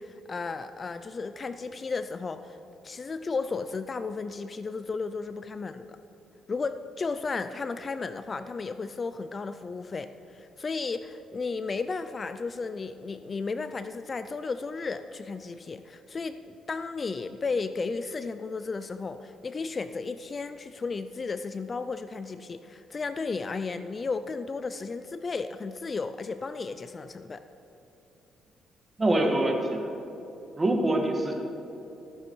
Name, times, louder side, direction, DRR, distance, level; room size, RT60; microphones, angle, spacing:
voice 1, 0.0-2.6 2.8-6.0 6.5-27.4, left 4 dB, 35° left, 11 dB, 0.4 m, -34 dB
voice 2, 29.0-29.9 30.6-31.3, right 1 dB, 25° right, 2 dB, 1.8 m, -24 dB
14.5 x 9.2 x 4.7 m, 3.0 s
cardioid pair, 90°, 0 cm